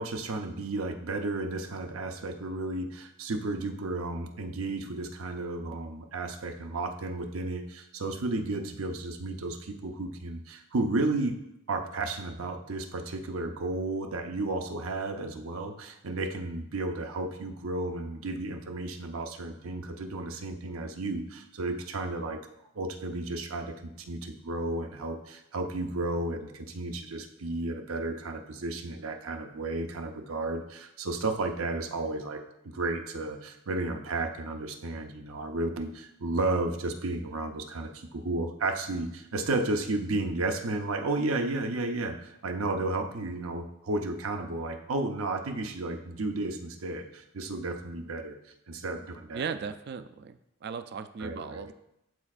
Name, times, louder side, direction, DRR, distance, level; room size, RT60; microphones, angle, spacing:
voice 1, 0.0-11.4 11.7-22.4 22.7-48.4 48.7-49.5 51.2-51.7, right 2 dB, 80° right, 5 dB, 0.7 m, -33 dB
voice 2, 49.3-51.7, right 6 dB, 50° right, 11 dB, 0.3 m, -37 dB
12.0 x 4.3 x 2.4 m, 0.83 s
head